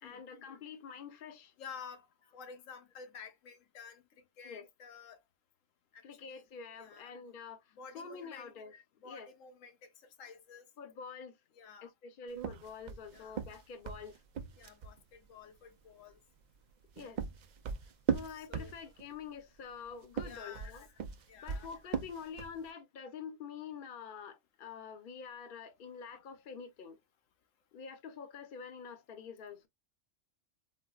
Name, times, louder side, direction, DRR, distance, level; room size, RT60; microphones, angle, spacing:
voice 1, 0.0-1.5 4.4-4.7 6.0-9.3 10.8-11.4 11.8-14.2 17.0-17.2 18.1-20.9 21.4-27.0 27.7-29.7, left 6 dB, 50° left, 0.7 m, -47 dB
voice 2, 1.6-2.1 2.3-5.2 5.9-6.5 6.8-7.1 7.7-8.5 9.0-10.7 11.5-11.9 13.1-13.4 14.6-16.2 18.3-18.7 20.2-20.7 21.3-21.7, left 6 dB, 90° left, 1.1 m, -51 dB
sound 1, 12.4-15.0 16.7-19.1 20.0-22.6, right 7 dB, 90° right, 0.4 m, -38 dB
4.2 x 2.1 x 2.3 m
omnidirectional pair, 1.3 m